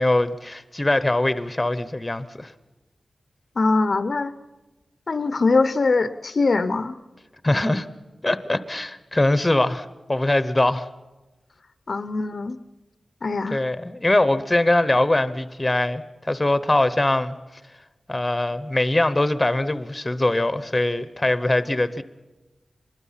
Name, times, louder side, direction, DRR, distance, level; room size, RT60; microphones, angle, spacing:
voice 1, 0.0-2.5 7.4-7.9 8.2-10.9 13.5-17.4 18.1-22.0, left 1 dB, 15° left, 0.8 m, -22 dB
voice 2, 3.6-4.3 5.1-7.0 11.9-12.6 13.2-13.6, left 3 dB, 50° left, 0.6 m, -22 dB
25.0 x 21.0 x 5.7 m
wide cardioid pair, 125°, 0 cm